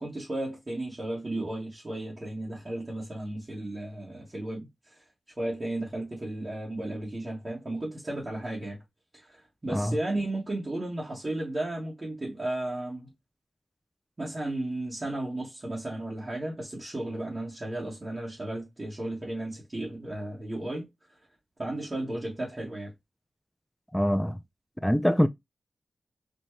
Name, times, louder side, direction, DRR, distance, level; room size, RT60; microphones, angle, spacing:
voice 1, 0.0-5.0 5.4-8.8 9.1-13.1 14.2-20.9 21.6-22.9, right 1 dB, 40° right, 1.4 m, -34 dB
voice 2, 23.9-24.4 24.8-25.3, equal, 5° left, 0.3 m, -24 dB
4.2 x 2.2 x 3.1 m
cardioid pair, 50°, 0 cm